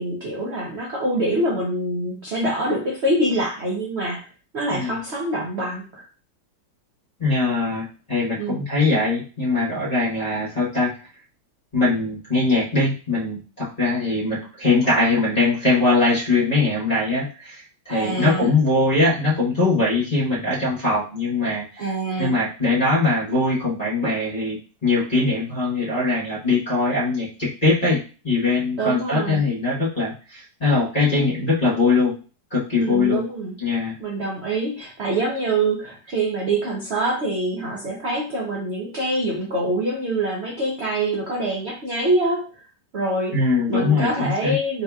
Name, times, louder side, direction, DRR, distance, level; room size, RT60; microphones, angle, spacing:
voice 1, 0.0-4.2 4.5-6.0 8.4-8.6 17.9-18.5 21.8-22.4 28.8-29.4 32.7-33.6 34.0-42.5 42.9-43.3 43.7-44.8, right 1 dB, 55° right, -3 dB, 0.7 m, -25 dB
voice 2, 4.7-5.0 7.2-10.9 11.7-21.9 22.2-32.1 32.5-33.2 33.6-33.9 43.3-44.5, left 3 dB, 25° left, -8 dB, 1.1 m, -21 dB
3.9 x 2.8 x 2.3 m, 0.36 s
omnidirectional pair, 1.9 m